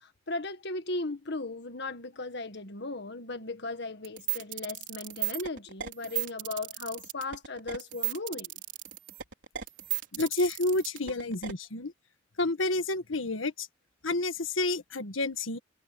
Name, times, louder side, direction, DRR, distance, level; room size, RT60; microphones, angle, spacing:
voice 1, 0.0-8.5, left 2 dB, 60° left, 1.8 m, -37 dB
sound 1, 4.0-11.5, right 14 dB, 65° right, 4.3 m, -35 dB
voice 2, 10.1-11.9 12.4-13.7 14.0-15.6, left 2 dB, 85° left, 1.6 m, -29 dB
head